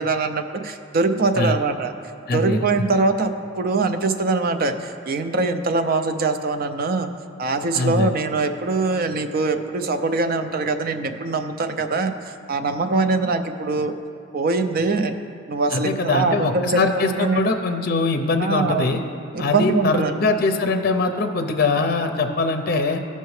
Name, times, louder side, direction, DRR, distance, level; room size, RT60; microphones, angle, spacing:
voice 1, 0.0-1.9 2.3-3.3 3.6-7.1 7.4-12.1 12.5-13.9 14.3-15.2 15.5-17.5 18.4-19.0 19.3-20.1, right 3 dB, 50° right, 8 dB, 0.5 m, -22 dB
voice 2, 2.3-2.6 7.7-8.1 15.7-19.0 19.4-23.0, left 3 dB, 50° left, 7 dB, 0.5 m, -22 dB
15.5 x 5.5 x 3.2 m, 2.5 s
head